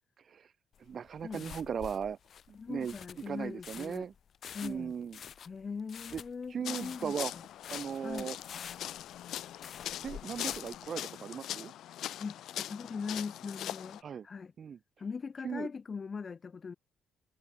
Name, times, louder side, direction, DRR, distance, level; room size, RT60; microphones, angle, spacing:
voice 1, 0.2-0.5 0.8-2.2 2.7-4.1 4.6-5.2 6.1-6.2 6.5-7.3 7.7-8.4 10.0-11.7 14.0-14.3 14.6-14.8 15.4-15.7, right 7 dB, 50° right, 3.3 m, -37 dB
sound 1, 0.7-10.9, left 8 dB, 60° left, 3.0 m, -48 dB
voice 2, 1.2-1.6 2.5-4.1 4.5-4.9 5.5-7.2 8.0-8.3 12.2-14.5 15.0-16.7, left 5 dB, 40° left, 2.8 m, -40 dB
sound 2, 6.6-14.0, left 12 dB, 75° left, 0.7 m, -41 dB
cardioid pair, 90°, 0 cm